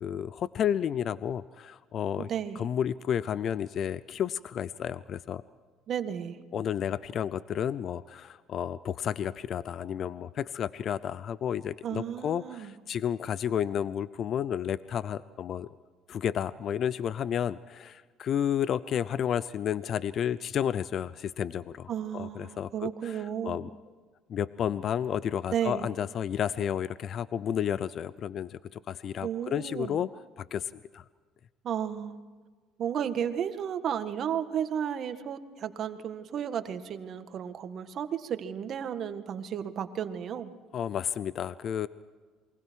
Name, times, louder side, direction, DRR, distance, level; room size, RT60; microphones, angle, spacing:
voice 1, 0.0-2.3 2.6-5.4 6.5-15.8 16.1-22.9 23.4-23.7 24.3-30.1 30.4-31.0 40.7-41.9, left 9 dB, 50° left, 17 dB, 0.6 m, -31 dB
voice 2, 2.2-2.6 5.9-6.4 11.8-12.7 21.9-23.6 25.5-25.9 29.2-30.0 31.6-32.2 32.8-40.5, right 9 dB, 55° right, 9 dB, 1.8 m, -33 dB
28.5 x 23.5 x 4.7 m, 1.4 s
supercardioid pair, 85°, 0 cm